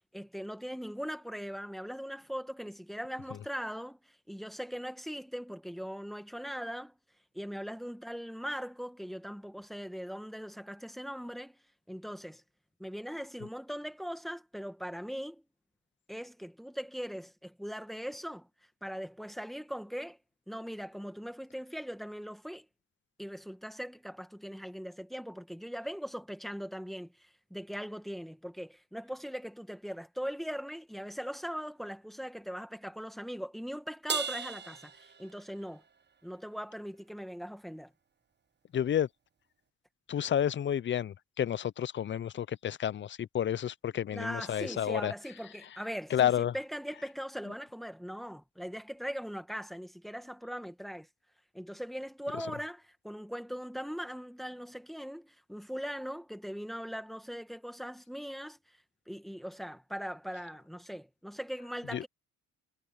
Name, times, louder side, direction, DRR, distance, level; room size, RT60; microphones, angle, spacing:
voice 1, 0.1-6.9 7.3-11.6 11.9-12.4 12.8-15.4 16.1-18.5 18.8-20.2 20.5-22.7 23.2-35.8 36.2-37.9 44.1-51.1 51.5-58.6 59.1-62.1, equal, ahead, 1.9 m, -40 dB
Crash cymbal, 34.1-35.8, right 6 dB, 35° right, 1.3 m, -37 dB
voice 2, 38.7-39.1 40.1-45.1 46.1-46.5 61.9-62.0, left 10 dB, 40° left, 0.5 m, -30 dB
cardioid pair, 90°, 30 cm